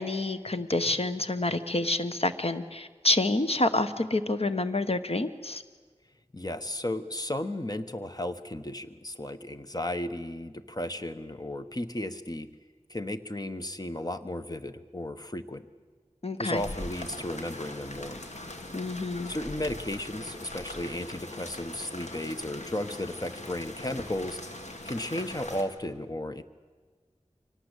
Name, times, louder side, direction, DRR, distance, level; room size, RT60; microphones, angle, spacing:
voice 1, 0.0-5.6 16.2-16.6 18.7-19.3, left 2 dB, 60° left, 10 dB, 1.2 m, -28 dB
voice 2, 6.3-12.5 12.9-15.6 16.4-18.2 19.3-24.4 24.7-26.4, left 1 dB, 35° left, 10 dB, 1.2 m, -34 dB
sound 1, 16.5-25.6, left 1 dB, 85° left, 2.2 m, -41 dB
24.5 x 18.5 x 8.2 m, 1.5 s
wide cardioid pair, 45°, 12 cm